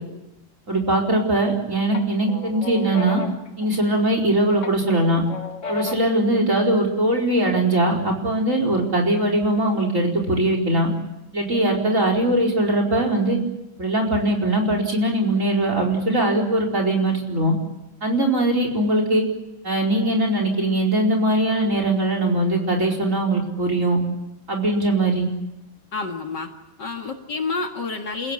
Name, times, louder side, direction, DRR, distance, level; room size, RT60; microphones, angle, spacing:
voice 1, 0.7-3.2 3.6-5.2 5.7-10.9 11.3-13.4 13.8-17.5 18.0-19.2 19.6-24.0 24.5-25.3, right 1 dB, 35° right, 2 dB, 5.0 m, -21 dB
sound 1, 0.9-1.5 1.9-4.2 4.6-6.2, left 3 dB, 35° left, 1.7 m, -34 dB
voice 2, 25.9-26.5 26.8-28.3, left 4 dB, 55° left, 3 dB, 2.6 m, -29 dB
29.5 x 16.0 x 9.9 m, 0.97 s
omnidirectional pair, 2.4 m